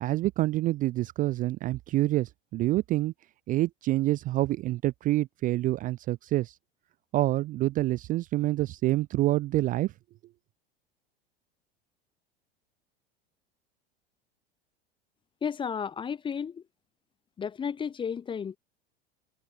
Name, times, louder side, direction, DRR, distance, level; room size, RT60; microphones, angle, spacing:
voice 1, 0.0-3.1 3.5-6.5 7.1-9.9, right 16 dB, 30° right, 0.4 m, -27 dB
voice 2, 15.4-16.6 17.4-18.6, left 7 dB, 15° left, 0.6 m, -33 dB
figure-of-eight pair, 80°, 30 cm